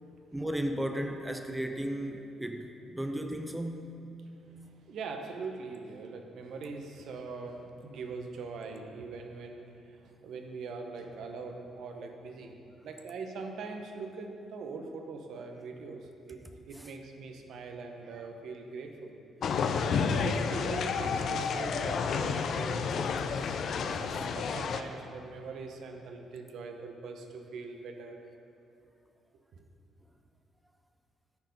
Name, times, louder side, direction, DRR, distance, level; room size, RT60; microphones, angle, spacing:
voice 1, 0.3-4.1 16.8-16.9 23.9-24.1, right 1 dB, 10° right, 6 dB, 0.5 m, -35 dB
voice 2, 4.4-12.6 12.8-16.4 16.7-19.2 19.8-22.9 23.9-28.2 29.5-29.6, right 4 dB, 70° right, 4 dB, 0.8 m, -42 dB
sound 1, 19.4-24.8, left 5 dB, 65° left, 0.4 m, -30 dB
9.7 x 4.6 x 5.3 m, 2.7 s
cardioid pair, 90°, 0 cm